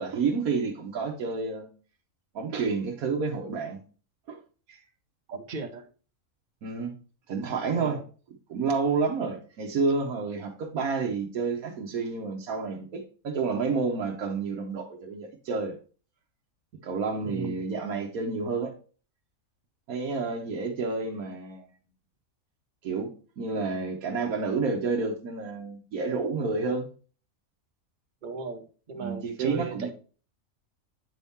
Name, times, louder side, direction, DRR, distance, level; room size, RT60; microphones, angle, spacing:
voice 1, 0.0-1.7 2.3-3.8 4.3-4.4 4.7-4.8 6.6-6.9 7.3-8.0 8.5-15.8 16.8-18.7 19.9-21.7 22.8-26.9 29.0-29.9, right 4 dB, 80° right, 1.4 m, -29 dB
voice 2, 5.3-5.9 7.8-8.0 17.2-17.6 26.3-26.4 28.2-29.9, right 4 dB, 40° right, 0.9 m, -36 dB
8.6 x 3.6 x 4.1 m
omnidirectional pair, 1.5 m